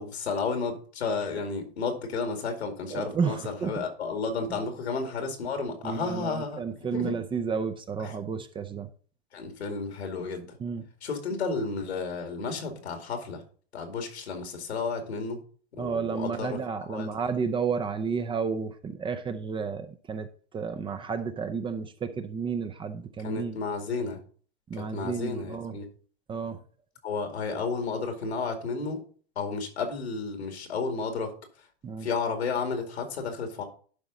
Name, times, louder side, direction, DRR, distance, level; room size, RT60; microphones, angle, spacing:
voice 1, 0.0-6.6 6.9-7.2 8.0-8.2 9.3-10.6 11.0-13.4 13.7-15.4 15.7-16.6 16.9-17.1 23.2-24.2 24.8-25.8 27.0-29.0 29.4-31.3 32.0-33.6, left 4 dB, 90° left, 5 dB, 2.3 m, -32 dB
voice 2, 2.9-3.8 4.5-4.6 5.8-8.9 10.6-10.8 15.8-20.3 20.5-23.6 24.7-25.7 26.3-26.6 31.8-32.1, right 6 dB, 15° right, 10 dB, 0.5 m, -31 dB
11.5 x 4.8 x 4.0 m, 0.43 s
hypercardioid pair, 115°, 32 cm